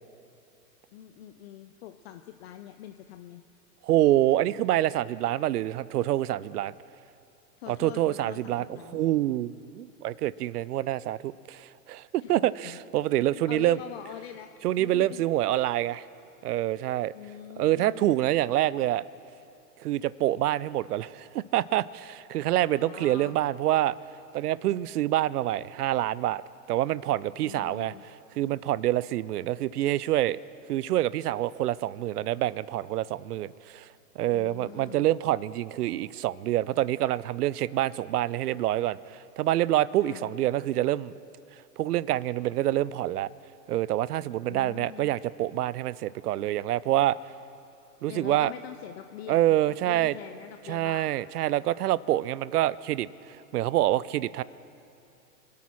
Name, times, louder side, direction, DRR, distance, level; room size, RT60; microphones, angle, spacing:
voice 1, 0.9-3.4 7.6-9.0 12.2-12.8 13.5-15.2 17.1-18.1 22.6-23.4 27.4-28.1 34.3-35.1 40.0-40.3 44.5-45.1 48.1-51.2, left 11 dB, 40° left, 8 dB, 0.6 m, -44 dB
voice 2, 3.8-6.7 7.7-8.7 8.9-13.8 14.6-16.0 16.4-17.1 17.6-19.0 19.8-24.0 24.3-26.4 26.7-27.9 28.4-30.4 30.7-33.9 34.2-41.1 41.8-43.3 43.7-47.2 48.0-48.5 49.3-50.1 50.7-54.4, right 14 dB, 70° right, 20 dB, 0.6 m, -26 dB
24.0 x 8.6 x 6.1 m, 2.7 s
hypercardioid pair, 125°, 48 cm